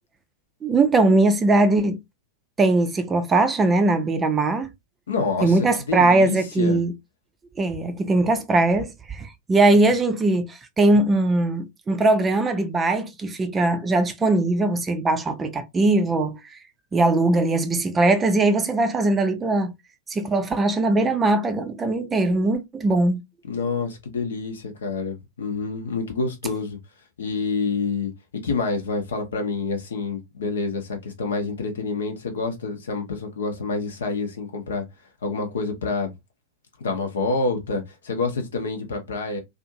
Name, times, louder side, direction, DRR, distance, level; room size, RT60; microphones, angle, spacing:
voice 1, 0.6-2.0 2.6-4.7 5.4-6.9 7.6-16.4 16.9-19.7 20.1-23.2, right 2 dB, 20° right, 0.5 m, -20 dB
voice 2, 5.1-6.8 23.5-26.8 27.2-28.1 28.4-34.8 35.2-36.1 36.8-39.4, left 4 dB, 65° left, 0.7 m, -27 dB
2.6 x 2.4 x 2.6 m
figure-of-eight pair, 95°, 0 cm